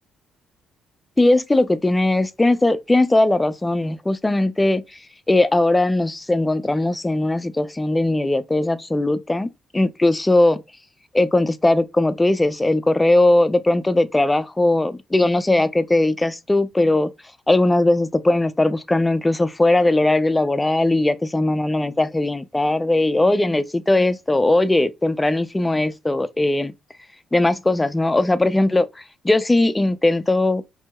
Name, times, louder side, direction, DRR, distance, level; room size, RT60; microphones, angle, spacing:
voice 1, 1.2-4.8 5.3-10.6 11.1-17.1 17.5-26.7 27.3-30.6, left 2 dB, 15° left, 0.4 m, -19 dB
4.6 x 2.7 x 2.2 m
cardioid pair, 90°, 0 cm